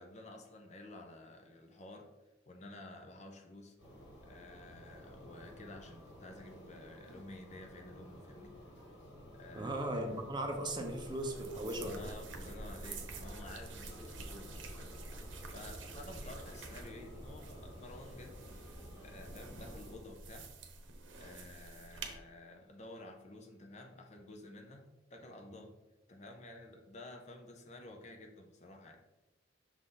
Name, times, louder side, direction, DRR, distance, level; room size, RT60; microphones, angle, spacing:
voice 1, 0.0-2.1 2.5-3.8 4.2-8.6 9.3-9.7 11.6-18.3 19.0-20.5 21.1-25.7 26.1-29.0, left 2 dB, 40° left, 3 dB, 0.7 m, -52 dB
sound 1, 3.8-20.0, equal, 90° left, 1.9 m, -52 dB
voice 2, 9.5-12.0, right 1 dB, 25° right, 3 dB, 0.8 m, -37 dB
sound 2, 10.6-22.1, right 3 dB, 70° right, 0.9 m, -49 dB
6.3 x 4.0 x 3.9 m, 1.0 s
head